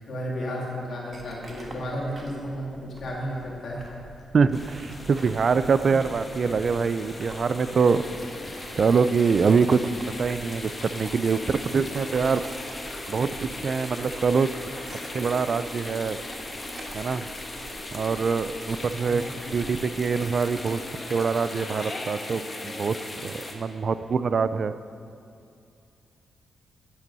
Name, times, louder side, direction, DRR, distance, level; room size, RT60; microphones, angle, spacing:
voice 1, 0.1-4.0 19.1-19.2, equal, 65° left, -4 dB, 2.2 m, -33 dB
sound 1, 1.1-20.8, right 2 dB, 40° right, 1.4 m, -46 dB
voice 2, 4.3-8.0 8.8-9.9 10.2-12.4 13.1-14.5 15.1-16.2 16.9-17.3 17.9-20.8 21.1-24.7, right 5 dB, 55° right, 13 dB, 0.3 m, -24 dB
sound 2, 4.5-23.5, left 2 dB, 30° left, 1.2 m, -38 dB
10.0 x 6.1 x 5.4 m, 2.5 s
cardioid pair, 80°, 0 cm